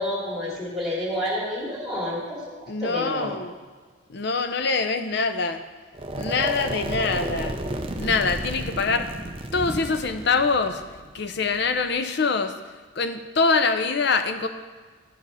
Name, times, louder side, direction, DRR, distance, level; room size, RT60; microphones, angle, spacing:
voice 1, 0.0-3.4, left 1 dB, ahead, -5 dB, 2.5 m, -29 dB
voice 2, 2.7-3.5 4.1-5.6 6.1-7.6 8.0-9.1 9.5-10.8 11.1-12.5 13.0-14.5, left 4 dB, 55° left, 8 dB, 0.6 m, -24 dB
sound 1, 5.9-11.9, right 1 dB, 25° right, 0.5 m, -32 dB
11.0 x 5.0 x 5.6 m, 1.4 s
head